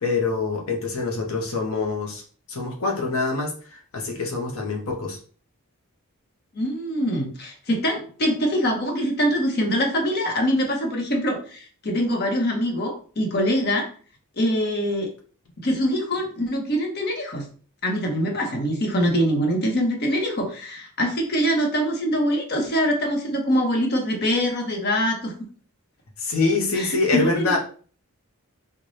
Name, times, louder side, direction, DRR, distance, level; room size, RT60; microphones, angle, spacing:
voice 1, 0.0-2.2 2.5-5.2 26.2-27.6, left 3 dB, 80° left, 0 dB, 0.7 m, -25 dB
voice 2, 6.5-13.9 14.4-15.1 15.6-17.4 17.8-25.3 26.7-27.5, equal, 45° left, 2 dB, 0.8 m, -24 dB
3.9 x 2.2 x 3.2 m, 0.42 s
head